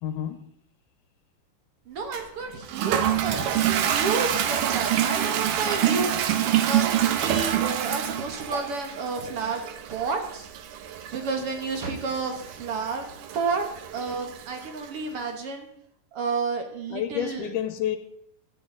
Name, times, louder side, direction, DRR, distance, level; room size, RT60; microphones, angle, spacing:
voice 1, 0.0-0.5 16.9-18.0, left 10 dB, 80° left, 2.3 m, -29 dB
voice 2, 1.9-6.1 6.6-9.6 9.9-10.5 11.1-13.6 13.9-15.7 16.1-17.5, right 4 dB, 55° right, 1.8 m, -31 dB
Toilet flush, 2.1-14.9, right 11 dB, 80° right, 2.6 m, -27 dB
16.5 x 11.5 x 3.8 m
omnidirectional pair, 3.8 m